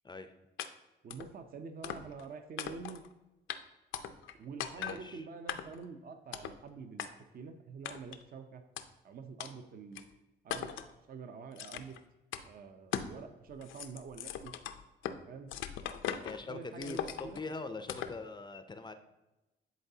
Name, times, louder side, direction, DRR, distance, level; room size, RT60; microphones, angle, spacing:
sound 1, 0.6-0.7 1.1-1.3 1.8-2.3 2.6-3.1 3.5-3.6 3.9-4.3 4.6-5.0 5.5-5.9 6.3-6.6 7.0-7.1 7.8-8.2 8.8-8.9 9.4-9.5 9.9-10.0 10.5-10.9 11.6-12.0 12.3-12.4 12.9-13.2 13.5-15.2 15.5-16.4 16.8-17.4 17.9-18.2, left 9 dB, 80° left, 0.5 m, -39 dB
voice 1, 1.0-3.0 4.4-7.1 7.3-8.6 9.0-10.0 10.4-10.7 11.1-12.0 12.4-14.5 15.3-15.5 16.5-17.4, right 5 dB, 50° right, 8 dB, 0.6 m, -46 dB
voice 2, 4.8-5.2 16.2-18.9, left 3 dB, 20° left, 9 dB, 0.4 m, -43 dB
10.5 x 4.0 x 2.7 m, 1.0 s
cardioid pair, 90°, 20 cm